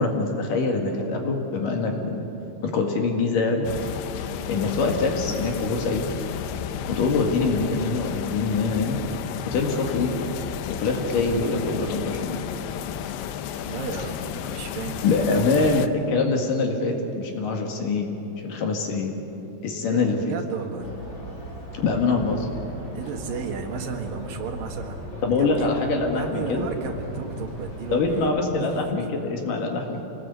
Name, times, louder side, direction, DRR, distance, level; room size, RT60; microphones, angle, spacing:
voice 1, 0.0-2.3 2.6-3.7 4.5-6.0 6.9-9.0 9.5-10.2 10.7-12.4 15.0-18.1 18.4-19.2 19.6-20.2 21.7-22.5 25.2-26.7 27.9-30.1, left 3 dB, 60° left, 2 dB, 3.3 m, -24 dB
sound 1, 3.6-15.9, left 9 dB, 90° left, 2.8 m, -32 dB
voice 2, 13.6-15.4 19.8-20.9 23.0-25.7 26.1-29.1, right 5 dB, 65° right, 3 dB, 3.3 m, -34 dB
sound 2, 20.8-28.3, equal, 30° left, 4.9 m, -38 dB
25.5 x 19.0 x 8.3 m, 3.0 s
omnidirectional pair, 4.6 m